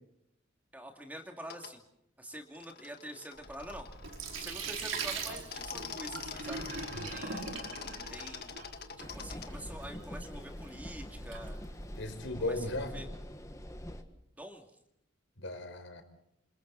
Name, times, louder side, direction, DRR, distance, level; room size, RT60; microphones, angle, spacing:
voice 1, 0.7-1.8 2.2-3.9 4.4-6.6 7.1-7.7 8.1-8.6 9.0-11.6 12.4-13.1 14.4-14.6, equal, 10° right, 3 dB, 2.4 m, -46 dB
sound 1, 1.4-1.7 2.5-4.9 5.3-9.5, left 6 dB, 50° left, 1.8 m, -45 dB
Sink (filling or washing), 3.4-12.2, right 4 dB, 80° right, 4.9 m, -42 dB
sound 2, 9.0-14.0, equal, 15° left, 1.7 m, -44 dB
voice 2, 12.0-13.0 15.4-16.0, left 2 dB, 70° left, 6 dB, 4.6 m, -36 dB
28.0 x 28.0 x 4.1 m, 0.79 s
head